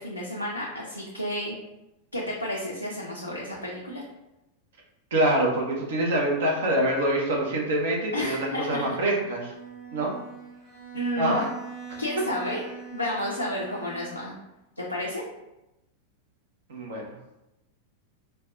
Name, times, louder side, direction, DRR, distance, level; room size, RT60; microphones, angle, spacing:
voice 1, 0.0-1.6 2.1-4.0 8.1-8.9 10.9-11.4 12.0-12.6 12.9-14.4 14.8-15.2, left 1 dB, 85° left, -4 dB, 0.5 m, -31 dB
voice 2, 5.1-9.5 9.9-10.1 11.2-11.5 16.7-17.0, right 1 dB, 60° right, -1 dB, 0.8 m, -25 dB
Bowed string instrument, 9.1-14.4, right 6 dB, 25° right, 1.2 m, -43 dB
4.4 x 2.2 x 2.4 m, 0.93 s
figure-of-eight pair, 90°, 0 cm